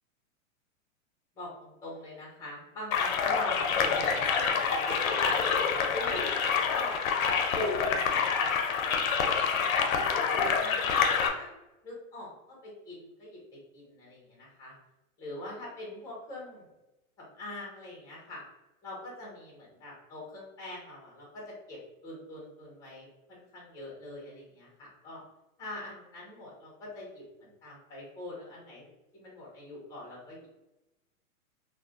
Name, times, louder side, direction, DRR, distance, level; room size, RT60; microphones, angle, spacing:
voice 1, 1.4-7.0 7.5-9.7 10.1-11.5 11.8-13.4 13.7-14.7 15.2-16.7 17.2-18.4 18.8-21.8 22.0-25.2 25.6-30.5, left 1 dB, 10° left, -4 dB, 0.6 m, -42 dB
sound 1, 2.9-11.3, left 6 dB, 80° left, 0.6 m, -27 dB
2.4 x 2.1 x 3.5 m, 0.98 s
supercardioid pair, 155°, 41 cm